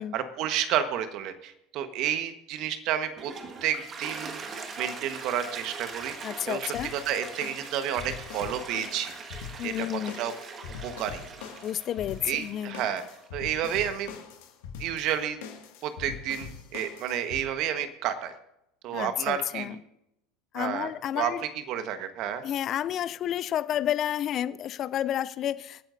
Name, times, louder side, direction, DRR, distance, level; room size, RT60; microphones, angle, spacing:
voice 1, 0.0-3.3 3.6-4.4 4.8-9.1 9.6-10.3 10.8-11.2 12.2-13.0 13.3-14.2 14.8-15.4 15.8-18.3 18.8-19.8 20.5-22.4, right 9 dB, 55° right, 9 dB, 1.3 m, -31 dB
Toilet flush, 3.1-13.3, right 4 dB, 35° right, 1.7 m, -42 dB
voice 2, 6.2-6.9 9.6-10.2 11.6-12.8 18.9-19.8 20.5-21.4 22.4-25.8, left 11 dB, 45° left, 16 dB, 0.4 m, -30 dB
sound 1, 6.7-17.4, left 7 dB, 75° left, 1.9 m, -43 dB
26.5 x 9.0 x 2.7 m, 0.83 s
hypercardioid pair, 85°, 0 cm